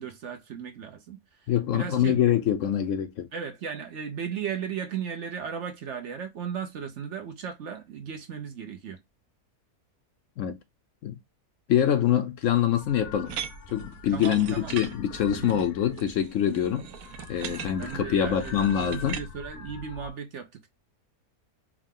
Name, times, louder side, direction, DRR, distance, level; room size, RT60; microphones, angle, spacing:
voice 1, 0.0-2.2 3.3-9.0 14.1-14.7 15.4-15.7 17.5-20.7, right 7 dB, 60° right, 0.8 m, -36 dB
voice 2, 1.5-3.3 10.4-10.6 11.0-11.2 11.7-13.3 13.7-16.9 17.3-19.2, left 10 dB, 70° left, 0.8 m, -25 dB
sound 1, 12.8-20.1, left 4 dB, 85° left, 1.3 m, -44 dB
sound 2, 13.3-19.3, right 9 dB, 80° right, 1.1 m, -40 dB
4.7 x 2.2 x 3.6 m
omnidirectional pair, 1.6 m